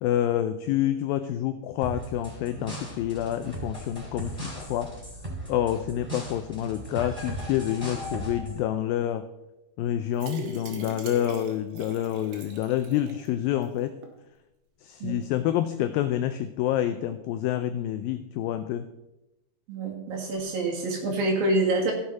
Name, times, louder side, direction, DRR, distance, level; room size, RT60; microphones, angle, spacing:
voice 1, 0.0-4.9 5.5-9.3 9.8-13.9 14.8-18.9, left 11 dB, 90° left, 9 dB, 2.0 m, -28 dB
sound 1, 1.8-8.6, right 1 dB, 5° right, 4.1 m, -37 dB
sound 2, 10.1-13.3 13.6-13.7 14.0-14.1, right 5 dB, 90° right, 3.5 m, -41 dB
voice 2, 19.7-21.9, right 2 dB, 65° right, 1 dB, 3.2 m, -26 dB
16.0 x 6.4 x 4.0 m, 0.94 s
omnidirectional pair, 4.7 m